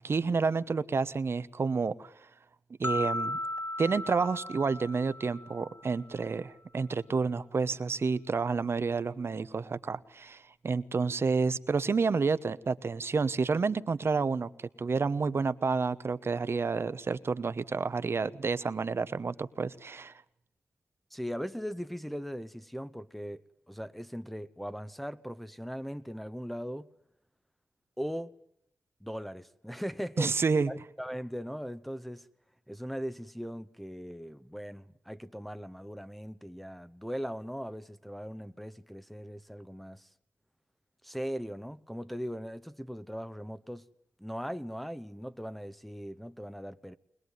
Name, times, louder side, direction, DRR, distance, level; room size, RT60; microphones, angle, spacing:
voice 1, 0.0-2.1 2.8-3.4 3.8-14.5 14.8-20.1 30.2-30.7, right 4 dB, 55° right, 1.1 m, -29 dB
sound 1, 2.8-6.0, left 1 dB, 40° left, 1.7 m, -36 dB
voice 2, 21.1-26.9 28.0-28.3 29.0-30.3 30.7-32.3 32.7-40.1 41.0-43.9 44.2-47.0, equal, ahead, 0.9 m, -39 dB
21.5 x 21.0 x 9.5 m
cardioid pair, 55°, 5 cm